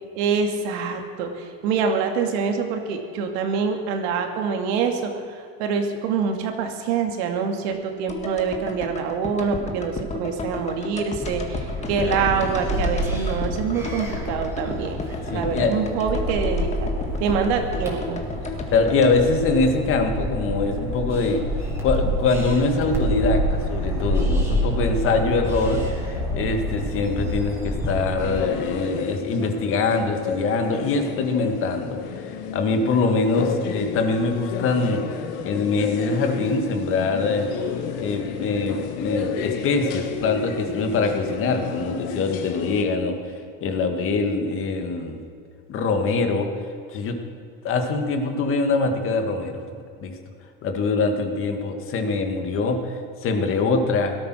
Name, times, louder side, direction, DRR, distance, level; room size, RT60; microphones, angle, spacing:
voice 1, 0.2-15.0 15.3-16.9 17.2-18.2, right 5 dB, 75° right, 4 dB, 2.4 m, -25 dB
sound 1, 8.1-20.3 20.5-20.6, left 3 dB, 20° left, 1.8 m, -33 dB
sound 2, 11.2-28.4, equal, 10° right, 3.8 m, -28 dB
voice 2, 11.9-12.2 15.3-15.7 18.7-21.4 21.8-35.0 35.4-37.5 38.0-43.2 43.6-45.2 45.7-46.5 46.9-47.2 47.6-50.1 50.6-52.9 53.2-54.2, left 3 dB, 40° left, 5 dB, 2.0 m, -23 dB
sound 3, 28.2-42.8, left 7 dB, 85° left, 1.9 m, -31 dB
18.0 x 13.0 x 6.3 m, 2.4 s
cardioid pair, 145°, 32 cm